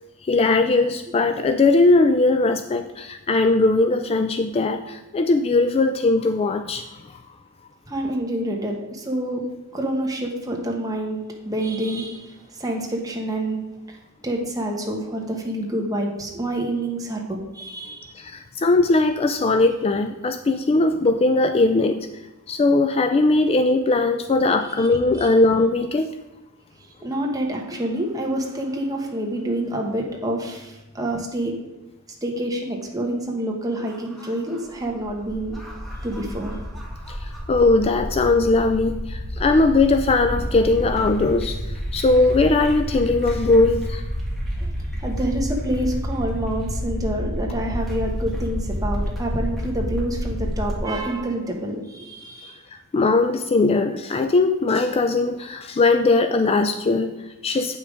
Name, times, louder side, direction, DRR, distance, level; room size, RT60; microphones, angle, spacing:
voice 1, 0.2-7.2 18.1-22.1 22.5-26.2 37.1-44.0 52.9-57.8, left 3 dB, 25° left, 8 dB, 0.3 m, -19 dB
voice 2, 7.9-9.5 9.7-13.6 13.9-14.0 14.2-18.1 24.8-24.9 25.2-25.3 26.8-31.5 32.2-35.6 36.0-36.6 44.6-44.7 45.0-52.6, right 1 dB, 15° right, 0 dB, 1.4 m, -27 dB
Evil Lair Collapse, 33.8-50.8, equal, ahead, 1.9 m, -29 dB
8.3 x 5.9 x 4.9 m, 1.0 s
head